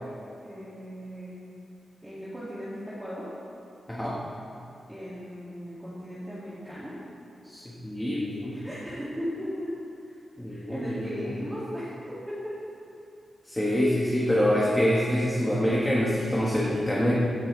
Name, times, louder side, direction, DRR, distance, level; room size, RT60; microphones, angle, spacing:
voice 1, 0.4-1.4 2.0-3.3 4.9-6.9 8.5-9.7 10.0-10.2 10.5-12.5, equal, 10° right, -11 dB, 2.4 m, -37 dB
voice 2, 7.4-8.5 10.4-11.3 13.5-17.1, equal, 10° left, -6 dB, 1.6 m, -26 dB
16.5 x 10.0 x 3.4 m, 2.7 s
wide cardioid pair, 140°, 0 cm